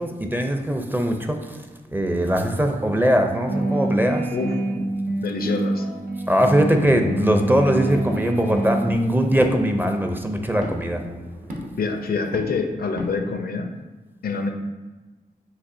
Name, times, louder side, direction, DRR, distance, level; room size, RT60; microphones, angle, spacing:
voice 1, 0.0-1.7 1.9-4.3 6.3-11.0, equal, 10° right, 4 dB, 0.5 m, -21 dB
sound 1, 3.5-8.9, right 1 dB, 85° right, 0.8 m, -26 dB
voice 2, 5.2-5.8 11.8-13.7 14.2-14.5, left 4 dB, 70° left, 6 dB, 0.5 m, -26 dB
sound 2, 7.8-13.4, equal, 55° right, 1.0 m, -38 dB
6.3 x 2.7 x 2.7 m, 1.2 s
cardioid pair, 65°, 16 cm